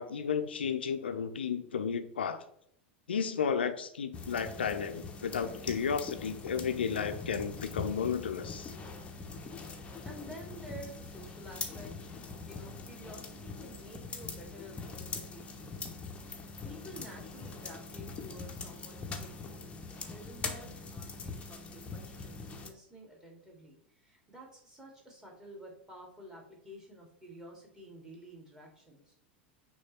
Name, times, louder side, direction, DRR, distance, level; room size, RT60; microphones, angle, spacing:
voice 1, 0.0-2.4 3.1-8.7, left 6 dB, 70° left, 8 dB, 0.7 m, -33 dB
sound 1, 4.1-22.7, left 4 dB, 20° left, 1.0 m, -43 dB
voice 2, 10.0-16.4 16.6-29.1, equal, 10° right, -2 dB, 2.6 m, -51 dB
6.4 x 3.2 x 5.8 m, 0.70 s
figure-of-eight pair, 85°, 6 cm